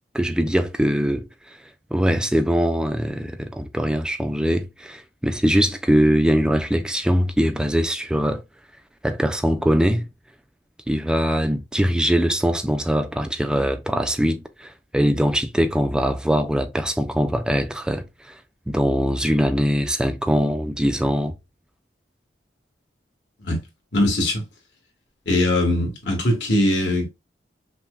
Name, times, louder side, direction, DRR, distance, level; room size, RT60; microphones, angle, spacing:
voice 1, 0.1-1.6 1.9-8.4 9.0-10.1 10.9-18.4 18.7-21.3, equal, 5° right, 0.3 m, -22 dB
voice 2, 23.9-24.4 25.2-27.1, left 1 dB, 80° left, 1.4 m, -21 dB
5.6 x 2.1 x 2.3 m
head